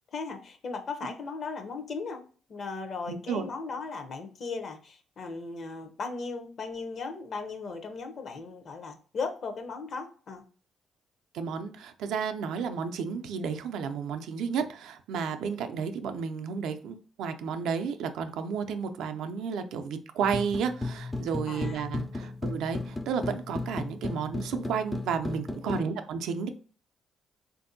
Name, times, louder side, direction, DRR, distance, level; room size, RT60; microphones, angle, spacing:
voice 1, 0.1-2.2 2.5-10.4 21.5-21.9 22.2-22.3 25.6-25.9, left 4 dB, 55° left, 6 dB, 0.6 m, -37 dB
voice 2, 3.1-3.4 11.3-26.5, right 6 dB, 85° right, 8 dB, 0.4 m, -32 dB
sound 1, 20.2-25.8, left 2 dB, 15° left, 0.3 m, -35 dB
3.5 x 2.6 x 2.5 m, 0.41 s
cardioid pair, 90°, 0 cm